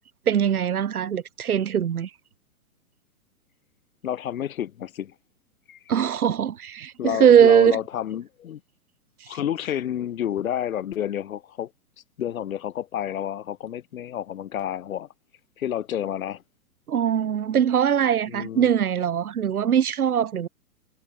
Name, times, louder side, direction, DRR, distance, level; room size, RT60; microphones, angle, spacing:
voice 1, 0.3-2.1 5.9-7.8 16.9-20.5, right 9 dB, 75° right, 5.7 m, -21 dB
voice 2, 4.0-5.1 5.7-5.8 7.0-8.6 9.3-11.7 12.2-15.1 15.6-16.4 18.3-18.7, left 10 dB, 65° left, 5.0 m, -30 dB
hypercardioid pair, 145°, 44 cm